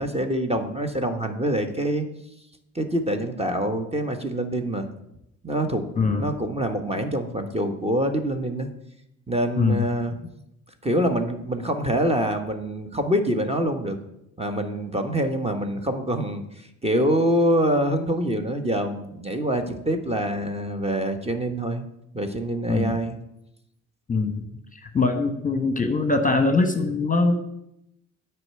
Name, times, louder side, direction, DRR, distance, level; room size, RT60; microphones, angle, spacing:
voice 1, 0.0-2.1 2.7-4.9 5.4-8.7 9.3-10.1 10.8-14.0 14.4-16.4 16.8-21.8 22.1-23.2, right 1 dB, 15° right, 6 dB, 1.4 m, -25 dB
voice 2, 6.0-6.3 9.6-9.8 22.7-23.0 24.1-24.4 24.7-27.4, left 3 dB, 20° left, 7 dB, 1.2 m, -22 dB
9.6 x 4.7 x 7.6 m, 0.82 s
hypercardioid pair, 55°, 38 cm